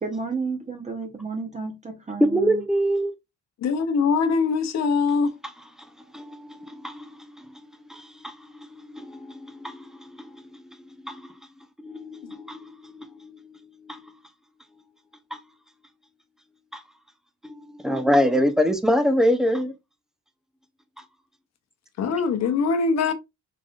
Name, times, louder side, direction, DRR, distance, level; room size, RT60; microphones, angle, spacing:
voice 1, 0.0-2.6, right 4 dB, 25° right, 0.9 m, -32 dB
voice 2, 2.2-3.1 6.1-7.1 7.9-9.8 11.0-11.2 11.8-14.0 16.7-16.8 17.4-17.5 17.8-19.7 23.1-23.2, equal, ahead, 0.7 m, -25 dB
voice 3, 3.6-5.3 22.0-23.1, left 5 dB, 60° left, 0.9 m, -22 dB
3.9 x 3.4 x 2.4 m
cardioid pair, 90°, 30 cm